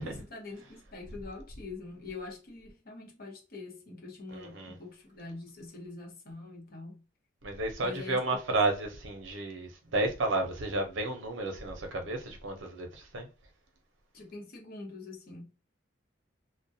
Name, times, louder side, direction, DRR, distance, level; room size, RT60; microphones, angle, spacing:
voice 1, 0.0-7.0 7.8-8.2 8.5-8.6 14.1-15.5, left 3 dB, 50° left, 0.8 m, -44 dB
voice 2, 4.3-4.8 7.4-13.3, right 2 dB, 75° right, 0.7 m, -32 dB
2.3 x 2.1 x 2.7 m
head